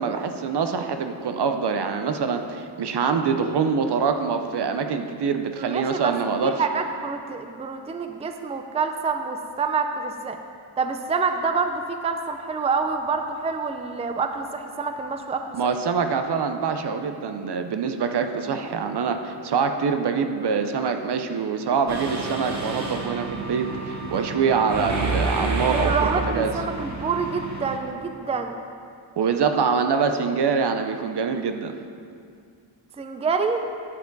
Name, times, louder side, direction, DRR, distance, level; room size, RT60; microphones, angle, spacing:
voice 1, 0.0-6.5 15.5-26.5 29.2-31.7, right 5 dB, 65° right, 7 dB, 0.6 m, -25 dB
voice 2, 5.6-6.1 6.4-10.4 10.8-15.6 25.7-28.6 33.0-33.6, right 4 dB, 15° right, 6 dB, 0.4 m, -27 dB
Mechanisms, 21.9-27.8, right 3 dB, 40° right, 1.1 m, -29 dB
9.9 x 6.9 x 4.0 m, 2.3 s
wide cardioid pair, 100°, 44 cm